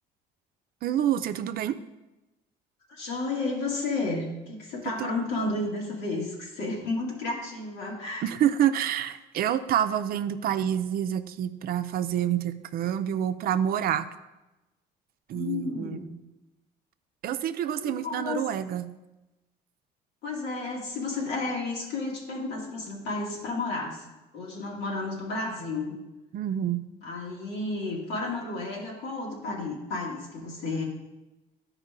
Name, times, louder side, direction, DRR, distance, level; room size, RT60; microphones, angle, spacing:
voice 1, 0.8-1.8 5.0-5.1 8.2-14.1 15.3-16.0 17.2-18.9 26.3-26.9, right 10 dB, 60° right, 10 dB, 0.5 m, -27 dB
voice 2, 2.9-8.3 15.3-16.1 17.8-18.5 20.2-24.0 24.3-25.9 27.0-30.8, left 3 dB, 80° left, -3 dB, 2.3 m, -32 dB
12.0 x 4.8 x 3.7 m, 1.0 s
cardioid pair, 110°, 17 cm